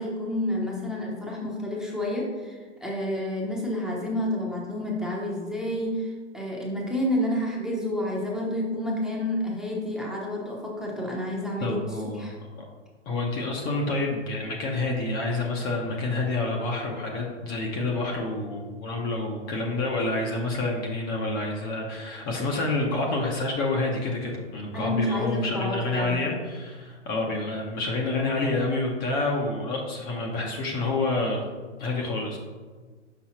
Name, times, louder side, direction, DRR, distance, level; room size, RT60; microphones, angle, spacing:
voice 1, 0.0-11.8 12.0-12.4 24.7-26.3, left 1 dB, ahead, -4 dB, 0.8 m, -29 dB
voice 2, 11.6-12.2 12.6-12.7 13.1-31.4 31.8-32.4, left 2 dB, 25° left, 0 dB, 0.7 m, -28 dB
5.9 x 5.3 x 3.0 m, 1.4 s
hypercardioid pair, 125°, 36 cm